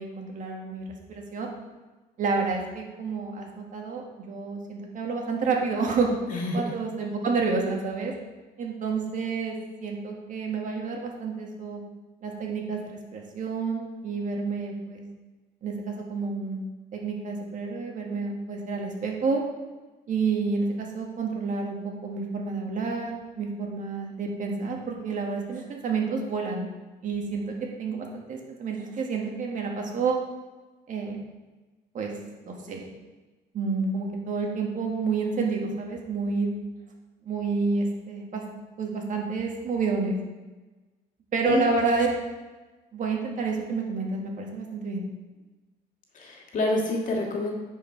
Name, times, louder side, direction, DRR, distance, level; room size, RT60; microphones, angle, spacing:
voice 1, 0.0-1.5 2.2-6.1 6.5-8.1 8.6-9.6 9.8-11.8 12.2-12.8 13.1-15.0 15.6-16.6 16.9-19.4 20.1-26.7 27.0-30.2 30.9-31.2 31.9-32.1 32.5-32.9 33.5-36.6 37.2-38.4 38.8-40.2 41.3-42.1 42.9-45.0, right 4 dB, 50° right, 0 dB, 1.9 m, -29 dB
voice 2, 46.2-47.5, left 2 dB, 50° left, 0 dB, 2.0 m, -27 dB
9.8 x 4.9 x 4.7 m, 1.2 s
cardioid pair, 110°, 17 cm